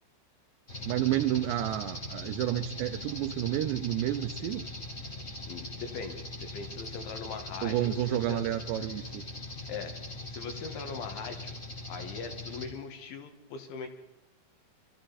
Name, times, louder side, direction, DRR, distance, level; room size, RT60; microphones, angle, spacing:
sound 1, 0.7-12.7, left 1 dB, 50° left, 0.7 m, -41 dB
voice 1, 0.9-4.6 7.6-9.2, right 13 dB, 80° right, 7 dB, 2.7 m, -30 dB
voice 2, 5.5-6.2 6.5-8.4 9.7-9.9 10.3-11.6 11.9-13.9, left 5 dB, 80° left, 5 dB, 3.9 m, -40 dB
24.0 x 13.5 x 4.1 m, 0.91 s
omnidirectional pair, 5.3 m